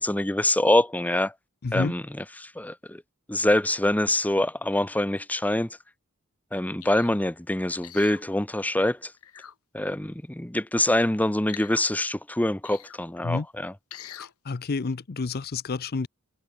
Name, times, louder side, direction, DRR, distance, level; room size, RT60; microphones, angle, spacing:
voice 1, 0.0-1.3 1.7-2.0 2.4-3.0 3.3-5.8 6.5-9.1 9.7-13.7, left 1 dB, 5° left, 0.7 m, -25 dB
voice 2, 1.6-1.9 13.2-13.5 14.2-16.1, left 4 dB, 45° left, 0.6 m, -29 dB
sound 1, 6.8-7.2 7.8-8.2 9.2-9.5 11.5-11.8 12.6-13.0 13.9-14.3 14.9-15.0, left 10 dB, 90° left, 1.3 m, -43 dB
head